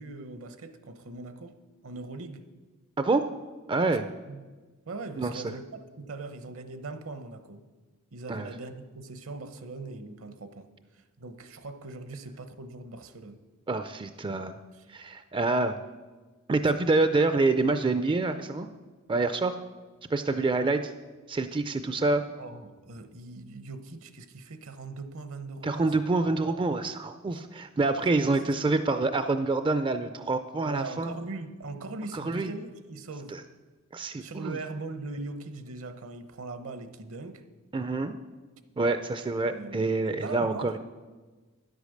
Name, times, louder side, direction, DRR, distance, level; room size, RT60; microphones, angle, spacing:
voice 1, 0.0-1.5 1.8-2.4 4.3-4.4 4.9-7.6 8.1-10.7 10.9-13.4 14.7-14.9 22.4-25.9 26.5-26.6 28.1-28.5 30.6-33.3 34.2-37.4 39.5-40.8, right 3 dB, 65° right, 10 dB, 0.9 m, -40 dB
voice 2, 3.7-4.1 5.2-5.4 8.3-8.5 13.7-14.6 14.9-15.8 16.5-18.7 19.1-19.6 20.1-20.9 21.3-22.2 25.6-31.1 32.1-32.5 33.9-34.6 37.7-38.1 38.8-40.7, right 3 dB, 25° right, 9 dB, 0.4 m, -27 dB
10.0 x 8.2 x 6.5 m, 1.3 s
head